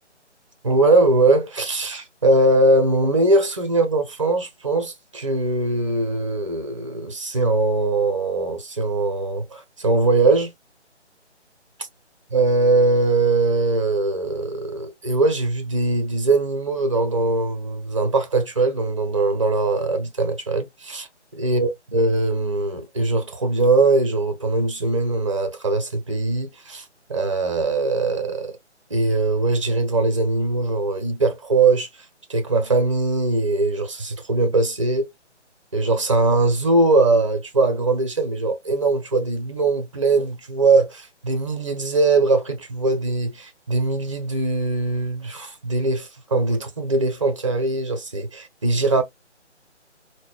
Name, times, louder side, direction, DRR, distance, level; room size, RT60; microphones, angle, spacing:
voice 1, 0.6-10.5 12.3-21.1 21.3-26.8 27.1-28.6 28.9-31.9 32.3-35.1 35.7-49.0, right 2 dB, 25° right, 0.6 m, -21 dB
3.8 x 2.1 x 3.0 m
figure-of-eight pair, 150°, 36 cm